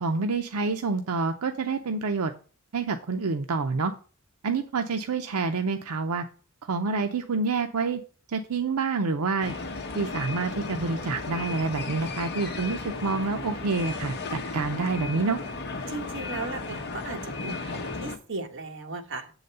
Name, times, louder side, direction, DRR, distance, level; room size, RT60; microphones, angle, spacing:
voice 1, 0.0-2.3 2.7-3.9 4.4-6.2 6.7-8.0 8.3-9.5 9.9-15.4, right 4 dB, 85° right, 6 dB, 0.6 m, -27 dB
sound 1, 9.4-18.2, left 3 dB, 50° left, 0.9 m, -35 dB
voice 2, 15.9-19.3, right 3 dB, 60° right, 3 dB, 1.3 m, -36 dB
7.6 x 4.0 x 6.6 m, 0.39 s
head